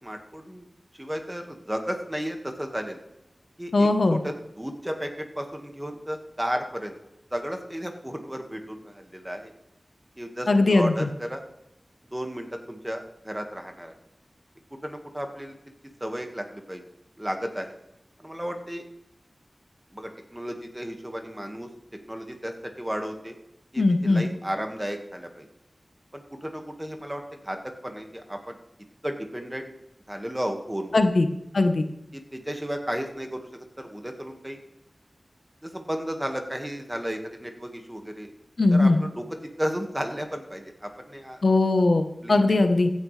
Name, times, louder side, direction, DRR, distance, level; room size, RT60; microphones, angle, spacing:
voice 1, 0.0-0.7 1.0-3.0 3.6-7.0 7.3-9.5 10.2-11.4 12.1-13.9 14.8-15.5 16.0-16.8 17.2-17.7 18.2-18.8 19.9-21.7 22.1-23.3 23.7-25.5 26.1-28.6 29.0-29.7 30.1-31.0 32.1-34.6 35.6-38.3 38.7-39.2 39.6-41.4 42.2-42.4, equal, 15° right, 4 dB, 1.7 m, -33 dB
voice 2, 3.7-4.2 10.5-11.1 23.8-24.2 30.9-31.3 31.5-31.9 38.6-39.0 41.4-42.9, left 2 dB, 75° left, 7 dB, 1.0 m, -20 dB
15.5 x 9.9 x 3.3 m, 0.84 s
wide cardioid pair, 55°, 0 cm